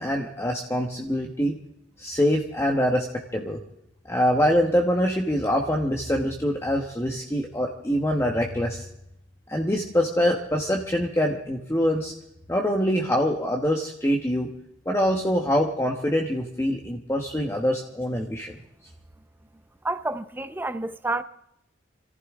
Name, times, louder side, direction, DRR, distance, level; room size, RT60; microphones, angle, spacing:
voice 1, 0.0-1.6 2.0-3.0 3.3-3.6 4.1-8.9 9.5-12.1 12.5-14.5 14.8-18.6, equal, 15° left, 1.3 m, -24 dB
voice 2, 19.8-21.2, right 2 dB, 10° right, 0.7 m, -29 dB
26.0 x 14.5 x 3.7 m
head